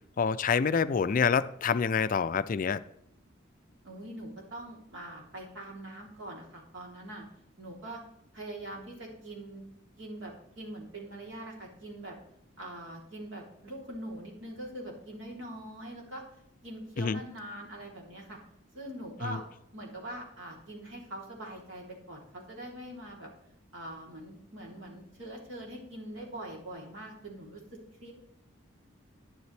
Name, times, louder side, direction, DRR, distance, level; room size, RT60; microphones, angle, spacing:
voice 1, 0.2-2.8 17.0-17.2 19.2-19.4, left 6 dB, 40° left, 13 dB, 0.3 m, -27 dB
voice 2, 3.8-7.2 7.6-8.0 8.3-9.6 10.0-12.1 12.6-16.2 16.6-18.4 18.7-19.4 19.7-23.3 23.7-28.1, right 1 dB, 65° right, -2 dB, 3.2 m, -43 dB
11.0 x 10.5 x 3.3 m, 0.75 s
head